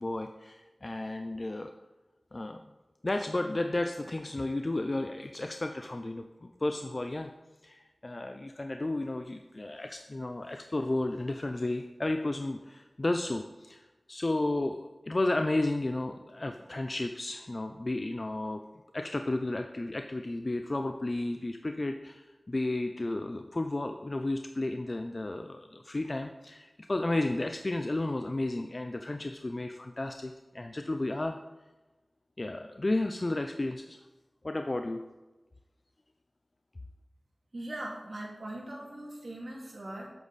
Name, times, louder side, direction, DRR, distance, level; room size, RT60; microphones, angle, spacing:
voice 1, 0.0-1.7 2.3-2.6 3.0-7.3 7.6-14.8 15.1-18.6 18.9-31.4 32.4-34.0 34.4-35.0, left 2 dB, 40° left, 6 dB, 0.4 m, -33 dB
voice 2, 37.5-40.1, right 1 dB, 60° right, -2 dB, 2.2 m, -40 dB
8.2 x 6.9 x 4.1 m, 1.1 s
wide cardioid pair, 60°, 0 cm